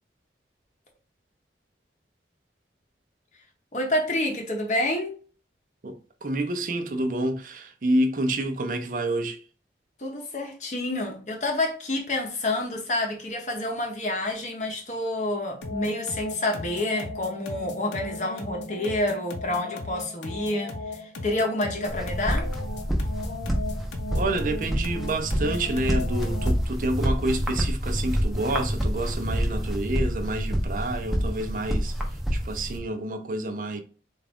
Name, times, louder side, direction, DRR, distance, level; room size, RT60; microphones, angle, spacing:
voice 1, 3.7-5.2 10.0-22.5, left 1 dB, 40° left, 0.7 m, -28 dB
voice 2, 5.8-9.4 24.1-33.8, right 1 dB, 45° right, 0.5 m, -28 dB
sound 1, 15.6-26.7, left 2 dB, 75° left, 0.7 m, -36 dB
sound 2, 21.9-32.8, equal, ahead, 0.6 m, -27 dB
3.9 x 2.4 x 3.4 m
head